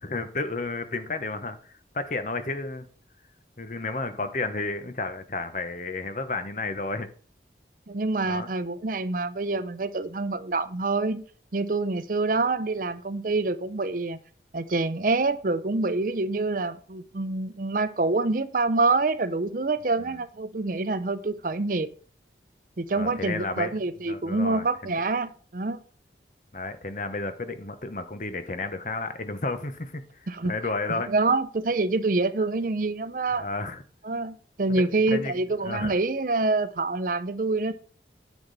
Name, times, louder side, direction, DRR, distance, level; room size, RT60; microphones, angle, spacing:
voice 1, 0.0-2.8 3.6-7.1 8.2-8.5 20.0-20.2 23.0-23.7 24.1-24.6 26.5-31.1 33.3-33.8 34.7-35.3 35.6-35.9, left 3 dB, 45° left, 1.0 m, -32 dB
voice 2, 7.9-11.2 11.5-14.2 14.5-21.9 22.8-25.8 30.3-30.5 30.9-33.5 34.0-37.7, right 3 dB, 50° right, 0.6 m, -26 dB
9.7 x 7.2 x 4.1 m
head